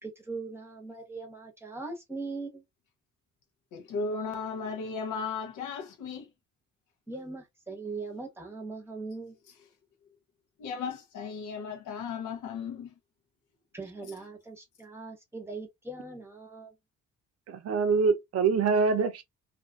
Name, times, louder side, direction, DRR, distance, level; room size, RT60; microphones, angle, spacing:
voice 1, 0.0-2.6 7.1-9.4 13.7-16.7, right 3 dB, 10° right, 0.9 m, -40 dB
voice 2, 3.7-6.3 10.6-12.9, left 5 dB, 80° left, 0.9 m, -35 dB
voice 3, 17.5-19.2, right 5 dB, 55° right, 0.6 m, -25 dB
2.7 x 2.4 x 2.2 m
cardioid pair, 90°, 30 cm